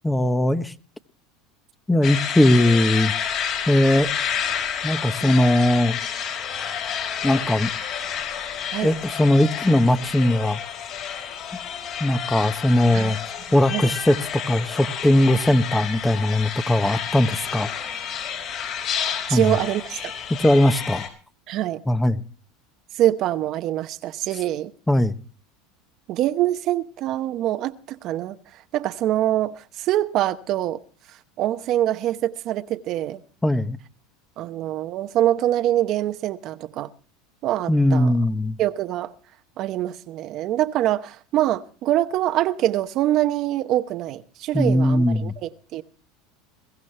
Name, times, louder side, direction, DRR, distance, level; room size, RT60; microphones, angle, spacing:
voice 1, 0.0-0.7 1.9-3.1 3.7-4.1 4.8-6.0 7.2-7.7 8.8-10.6 12.0-13.2 13.5-17.7 19.3-19.6 20.4-21.1 21.9-22.2 24.9-25.2 33.4-33.8 37.7-38.6 44.5-45.3, left 1 dB, 10° left, 0.9 m, -19 dB
sound 1, 2.0-21.1, left 8 dB, 50° left, 4.9 m, -30 dB
voice 2, 19.3-20.1 21.5-21.8 22.9-24.7 26.1-28.4 28.7-30.8 31.1-33.2 34.4-36.9 37.4-38.1 38.6-39.1 39.6-45.8, right 13 dB, 50° right, 0.9 m, -24 dB
22.0 x 15.0 x 3.3 m
supercardioid pair, 110°, 0 cm